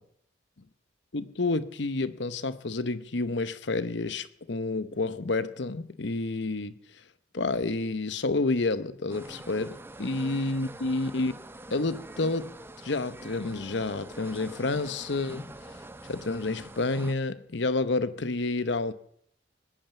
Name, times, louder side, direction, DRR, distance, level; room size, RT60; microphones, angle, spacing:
voice 1, 1.1-6.8 7.3-11.4 11.7-12.5 12.8-15.8 16.1-18.9, left 3 dB, 65° left, 14 dB, 0.9 m, -29 dB
sound 1, 9.1-17.1, right 1 dB, 10° right, 0.7 m, -45 dB
20.0 x 9.1 x 7.0 m, 0.70 s
head